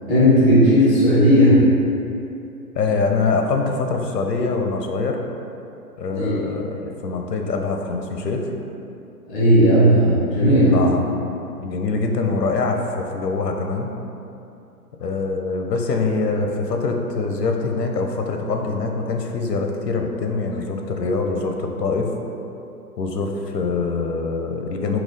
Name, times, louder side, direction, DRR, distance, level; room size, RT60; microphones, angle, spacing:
voice 1, 0.1-1.6 6.1-6.3 9.3-10.8, equal, ahead, -9 dB, 0.4 m, -15 dB
voice 2, 2.7-5.2 6.0-8.5 10.7-11.0 11.6-13.9 15.0-22.1 23.0-25.0, left 4 dB, 90° left, 2 dB, 0.6 m, -24 dB
4.1 x 2.3 x 3.8 m, 2.7 s
figure-of-eight pair, 125°, 47 cm